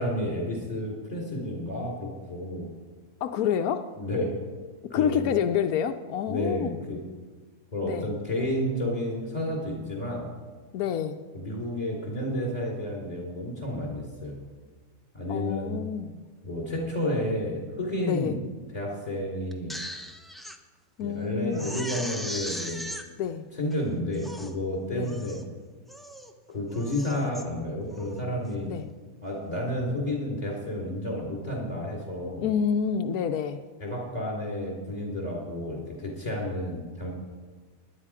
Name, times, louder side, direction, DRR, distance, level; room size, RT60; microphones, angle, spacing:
voice 1, 0.0-2.7 3.9-4.4 4.9-5.3 6.3-7.0 7.7-10.3 11.3-14.4 15.1-15.8 16.4-18.4 18.7-19.8 21.0-22.8 23.5-25.4 26.5-28.7 29.2-32.5 33.8-37.1, left 1 dB, 30° left, -1 dB, 3.8 m, -31 dB
voice 2, 3.2-3.9 4.9-6.8 7.8-8.1 10.7-11.2 15.3-16.2 18.0-18.4 21.0-21.7 23.2-23.4 24.9-25.2 28.7-28.9 32.4-33.6, left 8 dB, 85° left, 7 dB, 1.1 m, -28 dB
Crying sobbing, 19.5-20.6 21.0-21.1 21.5-23.0 23.7-23.8 24.1-24.6 25.1-25.5 25.9-26.3 26.7-27.4 27.9-28.2, equal, ahead, 0.6 m, -38 dB
16.5 x 10.5 x 4.9 m, 1.4 s
omnidirectional pair, 1.5 m